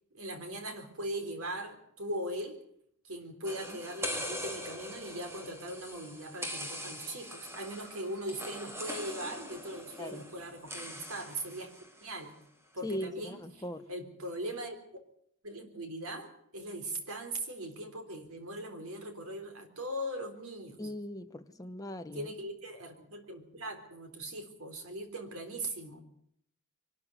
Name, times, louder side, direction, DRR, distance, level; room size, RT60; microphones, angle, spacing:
voice 1, 0.1-2.6 3.0-12.3 12.7-13.6 13.9-14.8 15.4-20.9 22.1-26.0, right 1 dB, 80° right, 3.8 m, -40 dB
sound 1, 3.4-12.2, equal, 10° right, 2.8 m, -42 dB
voice 2, 12.8-13.9 20.8-22.3, equal, 15° left, 1.2 m, -39 dB
24.0 x 12.5 x 9.8 m
head